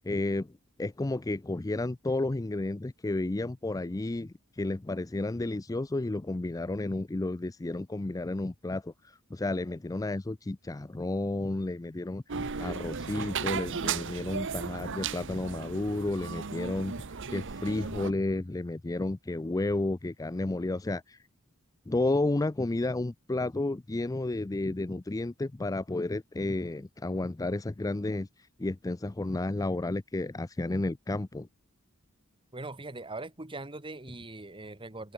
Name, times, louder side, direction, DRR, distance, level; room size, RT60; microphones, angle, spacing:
voice 1, 0.0-0.5 0.8-16.9 17.3-21.2 21.9-28.3 28.6-31.5, left 2 dB, 15° left, 0.4 m, -32 dB
sound 1, 12.3-18.1, right 6 dB, 60° right, 1.0 m, -35 dB
voice 2, 32.5-35.1, right 2 dB, 25° right, 2.2 m, -41 dB
head